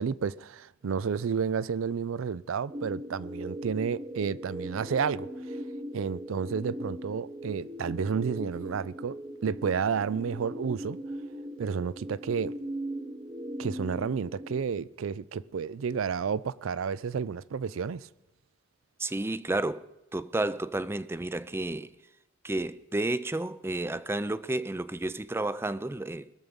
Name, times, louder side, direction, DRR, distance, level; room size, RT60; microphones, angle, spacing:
voice 1, 0.0-5.6 5.9-9.2 9.4-11.0 11.6-12.5 13.6-18.1, right 6 dB, 90° right, 0.4 m, -31 dB
sound 1, 2.7-14.6, equal, 30° right, 0.9 m, -39 dB
voice 2, 19.0-19.9 20.1-21.9 22.4-26.3, right 2 dB, 10° right, 0.4 m, -31 dB
21.0 x 7.2 x 5.3 m
head